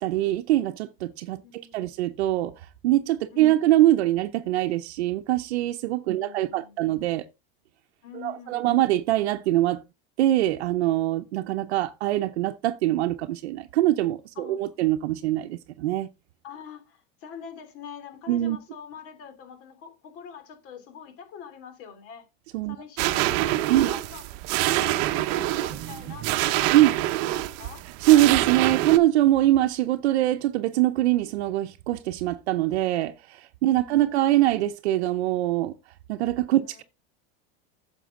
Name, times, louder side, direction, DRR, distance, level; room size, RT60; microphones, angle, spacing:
voice 1, 0.0-2.5 2.8-7.2 8.1-9.8 10.2-16.1 18.3-18.6 22.5-22.8 23.7-23.9 26.7-26.9 28.0-35.7 36.1-36.8, right 15 dB, 85° right, 0.8 m, -23 dB
voice 2, 1.4-2.0 3.3-3.7 6.1-7.0 8.0-8.8 14.3-14.9 16.4-22.3 22.7-24.3 24.6-27.9 33.7-34.3 36.6-36.8, left 7 dB, 45° left, 3.0 m, -45 dB
sound 1, 23.0-29.0, right 16 dB, 50° right, 0.9 m, -26 dB
9.4 x 7.0 x 3.7 m
supercardioid pair, 140°, 32 cm